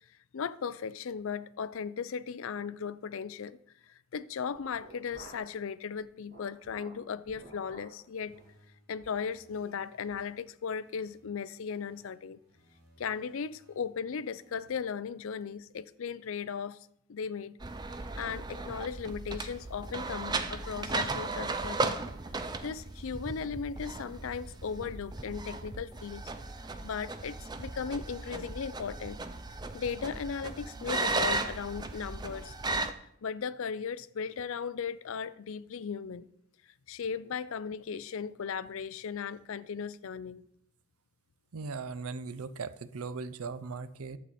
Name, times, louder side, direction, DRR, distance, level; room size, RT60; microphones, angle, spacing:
voice 1, 0.3-3.6 3.9-8.4 8.9-12.4 13.0-16.8 17.1-17.6 18.2-22.0 22.6-26.3 26.8-29.2 29.7-32.5 33.2-36.3 36.9-40.4, left 6 dB, 65° left, 0.4 m, -37 dB
sound 1, 4.5-5.6 6.0-8.0 8.3-8.5 9.0-9.2 9.6-9.7 10.1-10.3, right 2 dB, 35° right, 4.8 m, -53 dB
sound 2, 8.3-11.3 11.7-14.7, right 1 dB, 65° right, 3.1 m, -64 dB
sound 3, 17.6-32.9, right 3 dB, 20° right, 0.4 m, -36 dB
voice 2, 41.5-44.2, right 4 dB, 85° right, 0.5 m, -38 dB
11.0 x 7.7 x 4.2 m
head